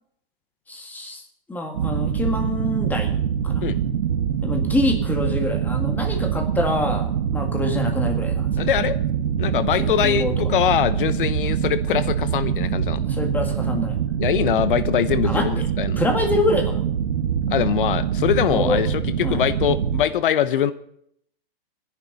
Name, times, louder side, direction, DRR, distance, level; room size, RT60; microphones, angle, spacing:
voice 1, 0.7-1.2 1.5-3.1 3.4-3.7 4.4-8.5 9.8-10.3 13.0-14.0 15.2-15.7 16.0-16.8 18.5-18.8 19.2-19.4, left 2 dB, 5° left, 4 dB, 2.0 m, -26 dB
sound 1, 1.7-20.0, right 8 dB, 80° right, 1.7 m, -24 dB
voice 2, 8.6-9.0 9.4-13.0 14.2-16.0 17.5-20.7, left 10 dB, 60° left, 15 dB, 1.0 m, -22 dB
26.5 x 10.5 x 4.2 m, 0.70 s
hypercardioid pair, 160°, 30 cm